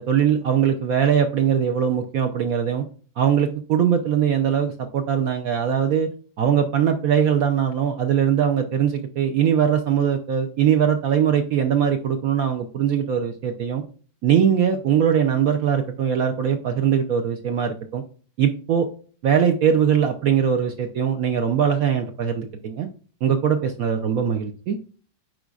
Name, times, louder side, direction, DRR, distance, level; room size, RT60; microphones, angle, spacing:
voice 1, 0.0-2.8 3.2-6.1 6.4-13.8 14.2-18.0 18.4-18.9 19.2-22.9 23.2-24.8, right 8 dB, 65° right, 6 dB, 0.8 m, -21 dB
8.9 x 4.7 x 2.4 m, 0.41 s
omnidirectional pair, 2.1 m